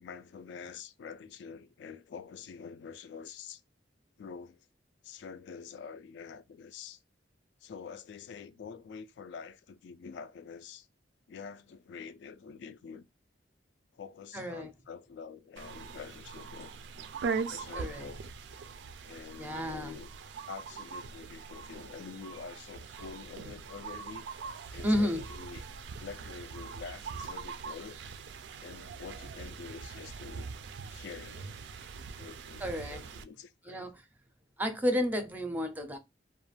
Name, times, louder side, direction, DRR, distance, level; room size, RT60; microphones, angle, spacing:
voice 1, 0.0-3.6 4.2-4.7 5.0-7.0 7.6-10.9 11.3-13.0 13.9-16.7 17.5-18.2 19.1-20.1 20.5-24.3 24.7-25.6 26.0-28.0 28.6-30.5 30.9-31.6 32.2-33.8, left 6 dB, 70° left, 0.3 m, -46 dB
voice 2, 14.3-14.7 17.7-18.1 19.4-20.0 24.8-25.2 32.6-33.0 33.7-33.9 34.6-36.0, equal, 10° right, 0.4 m, -31 dB
sound 1, 15.6-33.2, right 5 dB, 75° right, 0.3 m, -42 dB
2.3 x 2.1 x 3.1 m
head